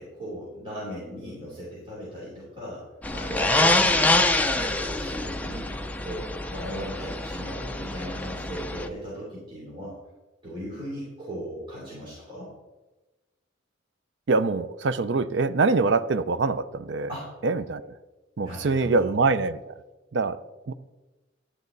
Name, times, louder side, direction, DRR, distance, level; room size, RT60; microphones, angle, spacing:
voice 1, 0.0-2.8 3.1-5.7 6.0-10.0 10.4-12.5 17.1-17.4 18.4-19.1, equal, 30° right, -8 dB, 3.3 m, -37 dB
sound 1, 3.0-8.9, left 2 dB, 10° left, 0.6 m, -25 dB
voice 2, 14.3-17.1 17.4-17.9 18.4-19.7 20.1-20.4 20.7-20.8, right 3 dB, 65° right, 13 dB, 0.5 m, -24 dB
11.0 x 9.7 x 4.0 m, 1.1 s
head